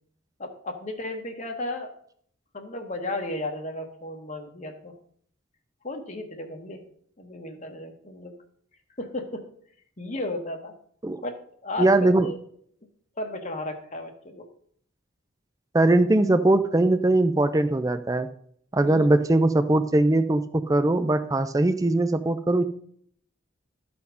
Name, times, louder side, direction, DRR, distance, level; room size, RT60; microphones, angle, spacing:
voice 1, 0.4-1.9 2.5-4.9 5.8-6.8 7.2-8.3 9.0-9.4 10.0-10.7 11.2-11.4 11.6-12.4 13.2-14.5 18.9-19.1, left 2 dB, 35° left, 4 dB, 1.1 m, -34 dB
voice 2, 11.8-12.3 15.7-18.3 18.7-22.6, right 2 dB, 15° right, 11 dB, 0.4 m, -21 dB
12.5 x 4.3 x 5.6 m, 0.62 s
head